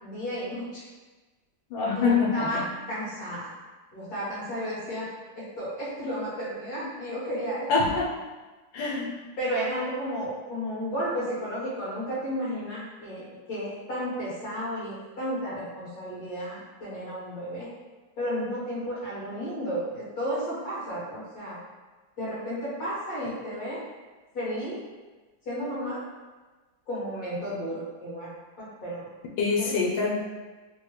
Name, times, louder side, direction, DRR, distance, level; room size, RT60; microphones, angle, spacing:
voice 1, 0.0-0.8 1.9-2.6 2.9-3.5 3.9-5.1 5.4-7.7 9.4-17.7 18.2-21.6 22.2-23.8 24.3-24.8 25.5-26.0 26.9-28.3 28.6-29.1 29.6-29.8, equal, 50° left, -10 dB, 2.1 m, -33 dB
voice 2, 1.7-2.7 7.7-8.1 8.7-9.2 29.4-30.2, left 4 dB, 80° left, -2 dB, 1.4 m, -25 dB
4.1 x 2.2 x 3.2 m, 1.3 s
omnidirectional pair, 2.1 m